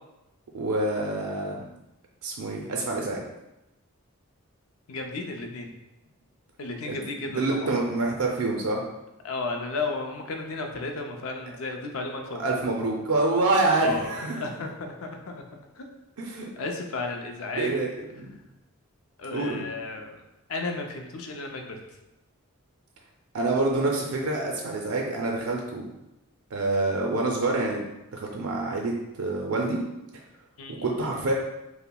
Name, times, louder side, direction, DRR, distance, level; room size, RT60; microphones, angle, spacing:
voice 1, 0.5-1.6 2.2-3.2 6.8-7.0 7.3-8.8 12.4-14.4 16.2-16.5 17.6-17.9 18.2-18.3 19.3-19.6 23.3-25.9 26.5-27.8 28.1-29.8 30.7-31.3, right 2 dB, 80° right, -1 dB, 0.5 m, -26 dB
voice 2, 4.9-5.7 6.6-7.7 9.2-12.5 13.8-15.4 15.7-15.9 16.6-17.7 19.2-20.2 20.5-22.0 30.6-31.1, left 3 dB, 70° left, 3 dB, 0.5 m, -34 dB
5.4 x 2.1 x 2.2 m, 0.94 s
head